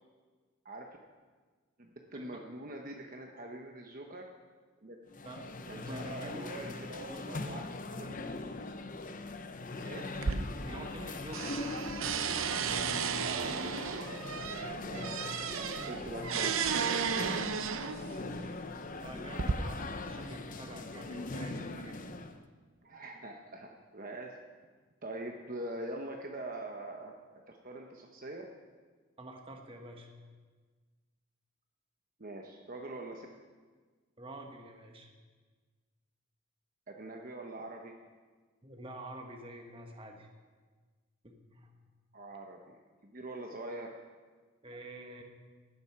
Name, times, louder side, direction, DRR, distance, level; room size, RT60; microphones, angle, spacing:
voice 1, 1.8-4.2 4.8-5.0 5.7-7.6 8.0-8.2 9.7-10.0 13.2-16.8 22.8-24.3 25.0-27.1 27.5-28.4 32.2-33.3 36.9-37.9 42.1-43.9, right 1 dB, 40° right, 1 dB, 1.0 m, -44 dB
sound 1, 5.1-22.4, left 2 dB, 40° left, 0.7 m, -41 dB
voice 2, 5.2-6.4 6.7-7.2 10.6-11.8 19.0-22.1 29.2-30.1 34.2-35.1 38.6-40.3 41.2-41.7 44.6-45.2, right 1 dB, 25° right, 2 dB, 1.4 m, -47 dB
sound 2, 10.2-11.1 11.3-18.2 18.9-19.5, right 6 dB, 70° right, 0.7 m, -34 dB
18.5 x 7.9 x 5.9 m, 1.4 s
head